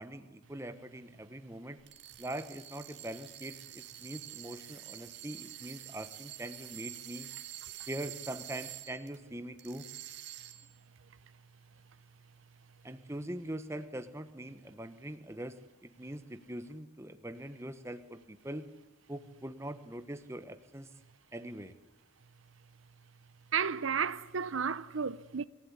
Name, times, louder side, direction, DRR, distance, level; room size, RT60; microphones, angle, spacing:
voice 1, 0.0-1.8 2.2-7.3 7.9-9.9 12.8-18.7 19.1-20.9 21.3-21.7, right 1 dB, 15° right, 1.1 m, -42 dB
sound 1, 1.8-9.2 9.6-10.8, right 13 dB, 55° right, 2.0 m, -47 dB
voice 2, 23.5-25.5, right 6 dB, 75° right, 0.7 m, -32 dB
26.5 x 15.5 x 9.7 m
head